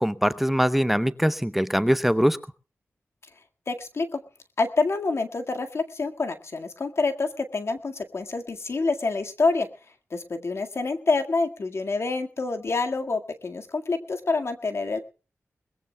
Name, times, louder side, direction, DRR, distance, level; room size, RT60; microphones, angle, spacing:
voice 1, 0.0-2.4, equal, 5° right, 14 dB, 0.7 m, -22 dB
voice 2, 3.7-4.2 4.6-9.7 10.1-15.0, left 3 dB, 60° left, 5 dB, 1.9 m, -27 dB
22.0 x 20.5 x 2.3 m, 0.34 s
wide cardioid pair, 70°, 5 cm